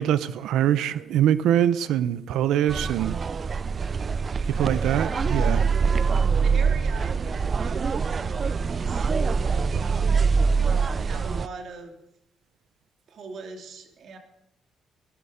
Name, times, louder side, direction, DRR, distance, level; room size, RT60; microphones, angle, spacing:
voice 1, 0.0-3.2 4.6-5.6, right 11 dB, 85° right, 0.6 m, -23 dB
sound 1, 2.7-11.5, right 5 dB, 40° right, 0.4 m, -24 dB
voice 2, 4.4-5.7 6.4-12.0 13.1-14.2, right 4 dB, 65° right, 2.7 m, -41 dB
17.5 x 12.0 x 5.1 m
cardioid pair, 90°, 0 cm